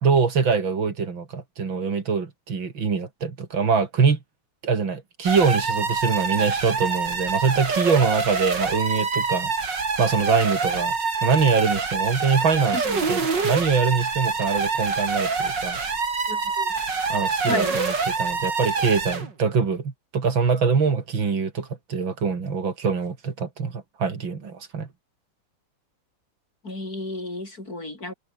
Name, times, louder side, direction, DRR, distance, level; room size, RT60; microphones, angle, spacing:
voice 1, 0.0-4.2 4.6-9.5 10.0-11.0 11.2-15.8 17.1-24.9, right 5 dB, 75° right, 3.5 m, -24 dB
sound 1, 5.2-19.3, right 4 dB, 60° right, 4.0 m, -26 dB
voice 2, 16.3-16.7 17.5-17.8 26.6-28.1, left 2 dB, 45° left, 7.7 m, -32 dB
omnidirectional pair, 2.2 m